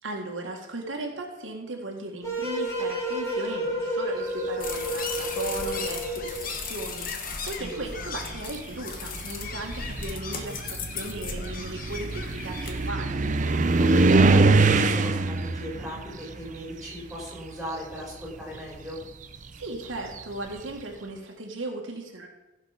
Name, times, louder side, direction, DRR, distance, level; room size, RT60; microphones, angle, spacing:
voice 1, 0.0-10.6 10.9-13.2 19.5-22.3, right 2 dB, 75° right, 1 dB, 1.8 m, -36 dB
sound 1, 2.2-6.5, equal, 15° left, 4.5 m, -30 dB
sound 2, 4.6-12.9, left 5 dB, 45° left, 1.4 m, -36 dB
sound 3, 5.5-6.1 7.1-7.2 7.8-17.7 17.9-20.6, right 3 dB, 40° right, 0.6 m, -25 dB
voice 2, 13.8-14.4 14.7-19.0, equal, 5° right, -4 dB, 4.8 m, -38 dB
16.0 x 6.6 x 5.1 m, 1.0 s
head